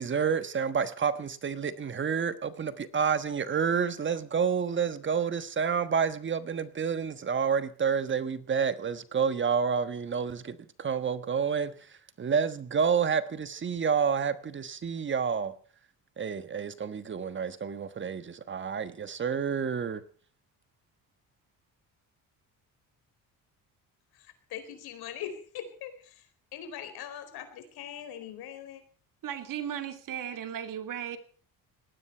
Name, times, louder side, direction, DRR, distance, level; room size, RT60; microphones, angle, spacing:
voice 1, 0.0-11.7 12.2-15.5 16.2-20.0, right 6 dB, 30° right, 1.3 m, -29 dB
voice 2, 24.1-28.8, left 9 dB, 85° left, 4.4 m, -42 dB
voice 3, 29.2-31.2, right 9 dB, 60° right, 2.5 m, -36 dB
19.5 x 16.5 x 4.5 m
cardioid pair, 130°, 37 cm